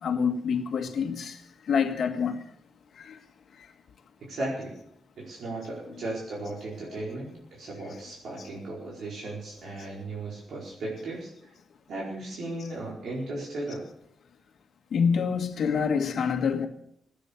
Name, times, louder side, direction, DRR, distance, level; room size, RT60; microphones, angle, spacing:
voice 1, 0.0-2.4 2.9-3.2 3.6-3.7 6.9-7.0 14.9-16.7, left 6 dB, 65° left, 1.7 m, -27 dB
voice 2, 4.2-4.8 5.2-11.3 11.9-13.8, right 2 dB, 65° right, 4.6 m, -36 dB
17.5 x 9.7 x 7.1 m
wide cardioid pair, 125°, 0 cm